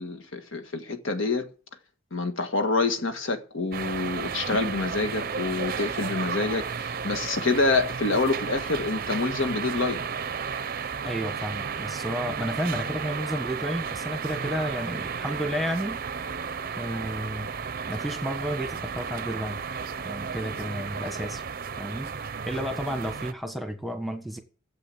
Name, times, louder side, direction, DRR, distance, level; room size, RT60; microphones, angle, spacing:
voice 1, 0.0-1.5 2.1-10.1, left 3 dB, 70° left, 1.7 m, -27 dB
sound 1, 3.7-23.3, right 6 dB, 45° right, 0.6 m, -33 dB
voice 2, 11.0-16.0 16.8-17.5 17.9-19.6 20.0-21.4 21.8-22.1 22.5-24.4, equal, ahead, 1.4 m, -32 dB
14.5 x 7.9 x 7.7 m
head